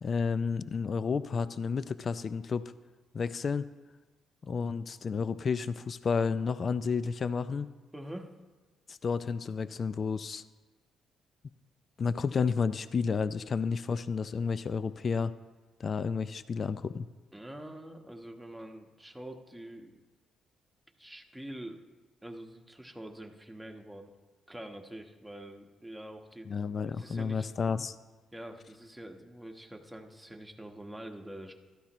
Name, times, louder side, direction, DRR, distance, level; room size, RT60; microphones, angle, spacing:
voice 1, 0.0-2.6 3.1-3.6 4.4-7.7 8.9-10.4 12.0-15.3 15.8-17.1 26.5-27.9, left 5 dB, 45° left, 14 dB, 0.5 m, -31 dB
voice 2, 7.9-8.4 17.3-20.0 21.0-21.8 22.2-24.1 24.5-26.5 26.9-27.5 28.3-31.5, right 1 dB, 5° right, 3 dB, 1.3 m, -45 dB
16.0 x 13.0 x 3.1 m, 1.3 s
cardioid pair, 90°, 0 cm